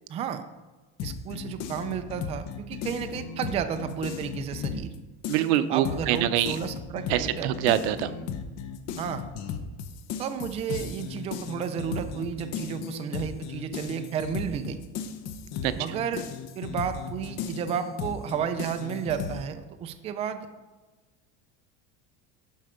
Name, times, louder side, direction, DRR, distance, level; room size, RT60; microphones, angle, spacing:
voice 1, 0.1-0.4 1.0-4.9 5.7-7.5 9.0-9.2 10.2-14.8 15.7-16.3 16.6-20.5, right 8 dB, 20° right, 8 dB, 0.4 m, -32 dB
sound 1, 1.0-4.9 5.2-19.4, left 7 dB, 50° left, 0.8 m, -36 dB
voice 2, 5.3-6.6 7.1-8.1 15.6-15.7, right 12 dB, 85° right, 12 dB, 0.7 m, -24 dB
12.0 x 4.3 x 5.0 m, 1.2 s
cardioid pair, 160°, 32 cm